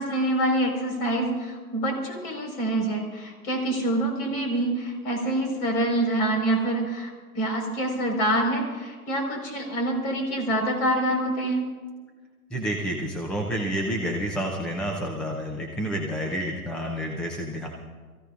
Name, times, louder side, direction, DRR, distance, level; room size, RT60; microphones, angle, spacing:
voice 1, 0.0-11.7, right 1 dB, 40° left, 2 dB, 4.6 m, -26 dB
voice 2, 12.5-17.7, equal, ahead, 1 dB, 0.4 m, -29 dB
27.0 x 15.0 x 2.5 m, 1.4 s
hypercardioid pair, 130°, 44 cm